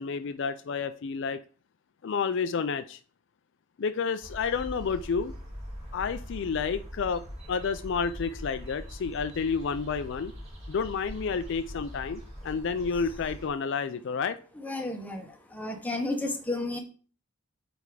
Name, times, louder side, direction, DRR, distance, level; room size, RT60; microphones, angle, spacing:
voice 1, 0.0-1.4 2.0-3.0 3.8-5.3 5.9-7.2 7.5-10.3 10.7-14.4, left 5 dB, 60° left, 11 dB, 0.4 m, -30 dB
sound 1, 4.2-13.5, equal, 30° right, 2.4 m, -42 dB
voice 2, 14.5-16.8, left 2 dB, 10° left, 3 dB, 0.9 m, -32 dB
8.4 x 3.5 x 4.8 m, 0.40 s
head